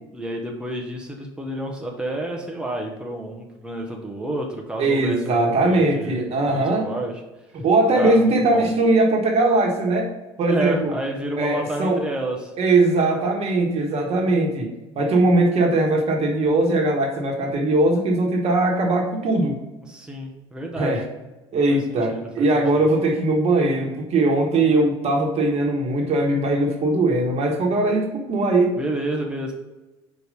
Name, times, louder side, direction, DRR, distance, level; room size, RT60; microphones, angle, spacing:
voice 1, 0.1-6.2 6.5-7.1 7.9-8.7 10.5-12.5 19.9-21.0 21.7-22.9 28.8-29.5, right 1 dB, 5° right, 0 dB, 1.2 m, -30 dB
voice 2, 4.8-6.9 7.5-10.1 10.4-10.9 11.4-12.0 12.6-19.6 20.7-21.0 21.5-28.8, right 2 dB, 45° right, 1 dB, 1.5 m, -20 dB
4.9 x 4.8 x 5.1 m, 1.1 s
hypercardioid pair, 65°, 14 cm